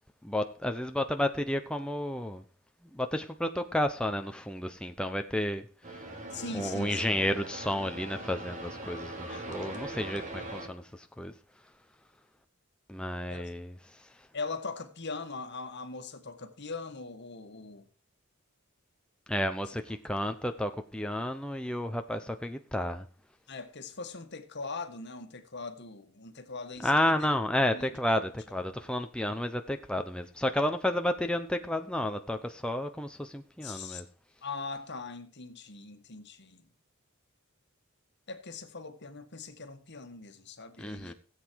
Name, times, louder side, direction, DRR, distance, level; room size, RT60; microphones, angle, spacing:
voice 1, 0.2-2.4 2.9-6.3 6.5-11.3 12.9-14.3 19.3-23.0 26.8-34.0 40.8-41.1, left 1 dB, 5° left, 0.8 m, -31 dB
sound 1, 5.8-10.7, right 2 dB, 40° right, 2.7 m, -41 dB
voice 2, 6.3-7.3 9.2-9.8 13.3-13.4 14.3-17.9 23.5-27.3 27.7-27.9 33.6-34.0 34.4-36.6 38.3-41.1, left 4 dB, 55° left, 1.7 m, -41 dB
17.0 x 8.3 x 4.7 m
head